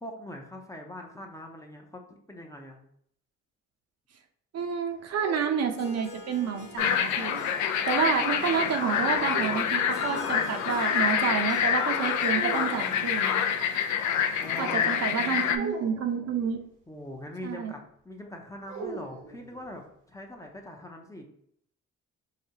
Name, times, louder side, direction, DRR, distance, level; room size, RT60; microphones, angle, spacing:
voice 1, 0.0-2.8 14.4-15.4 16.9-21.3, left 1 dB, 10° left, 1 dB, 0.5 m, -42 dB
voice 2, 4.5-7.4 7.9-13.7 14.6-16.6 17.4-17.7, right 7 dB, 60° right, 5 dB, 0.6 m, -29 dB
sound 1, 4.9-6.8 9.3-10.5 12.3-13.1 15.5-16.6 18.7-19.9, right 4 dB, 80° right, 0.9 m, -41 dB
Harp, 5.6-14.7, left 2 dB, 90° left, 1.0 m, -46 dB
sound 2, 6.8-15.6, left 8 dB, 70° left, 0.4 m, -27 dB
4.8 x 2.2 x 2.8 m, 0.68 s
cardioid pair, 90°, 30 cm